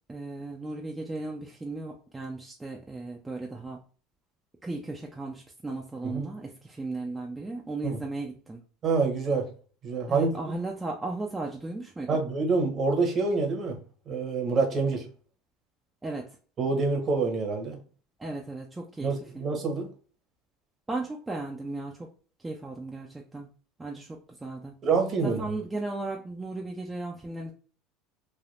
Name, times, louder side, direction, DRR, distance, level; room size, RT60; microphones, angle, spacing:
voice 1, 0.1-3.8 4.6-8.6 10.1-12.2 16.0-16.3 18.2-19.5 20.9-22.1 22.4-23.5 23.8-24.7 25.2-27.5, right 2 dB, 15° right, 0.5 m, -36 dB
voice 2, 8.8-9.5 9.8-10.3 12.1-13.8 14.1-15.1 16.6-17.8 19.0-19.9 24.8-25.4, right 4 dB, 40° right, 1.0 m, -26 dB
3.3 x 2.2 x 2.5 m
supercardioid pair, 100°, 0 cm